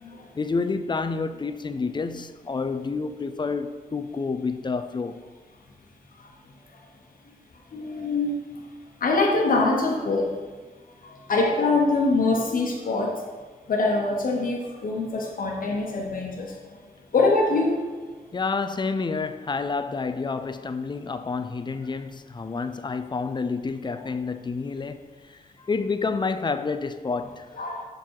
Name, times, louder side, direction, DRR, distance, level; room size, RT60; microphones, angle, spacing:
voice 1, 0.4-5.2 18.3-25.0 25.3-27.6, left 4 dB, 30° left, 0.4 m, -29 dB
voice 2, 7.7-8.4 9.0-10.3 11.0-13.1 13.7-16.8 17.1-17.8 23.9-24.1 27.6-27.8, left 3 dB, 65° left, 1.1 m, -24 dB
7.3 x 3.9 x 4.6 m
cardioid pair, 85°, 15 cm